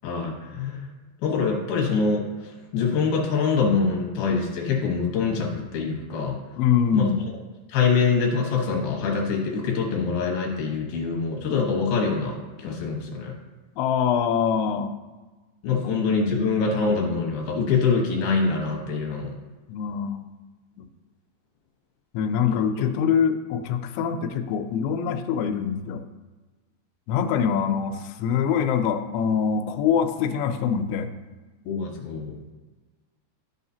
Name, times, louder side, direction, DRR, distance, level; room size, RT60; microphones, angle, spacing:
voice 1, 0.0-0.9 1.2-6.4 6.9-7.1 7.7-13.3 15.6-19.3 22.5-22.6 31.6-32.4, left 5 dB, 65° left, -1 dB, 2.8 m, -24 dB
voice 2, 6.6-7.2 13.8-15.0 19.7-20.3 20.8-20.9 22.1-26.0 27.1-31.1, left 7 dB, 90° left, 7 dB, 3.0 m, -24 dB
13.5 x 5.6 x 2.8 m, 1.3 s
omnidirectional pair, 5.2 m